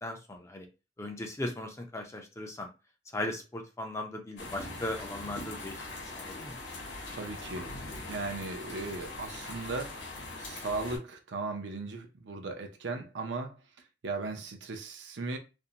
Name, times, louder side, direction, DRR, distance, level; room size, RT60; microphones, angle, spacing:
voice 1, 0.0-0.7 1.0-2.7 3.1-5.8 6.1-6.6, left 1 dB, 15° left, 0.4 m, -37 dB
sound 1, 4.4-11.0, left 2 dB, 70° left, 0.9 m, -41 dB
voice 2, 7.1-7.8 8.1-13.6 14.0-15.4, right 3 dB, 75° right, 0.6 m, -37 dB
2.5 x 2.1 x 2.7 m
head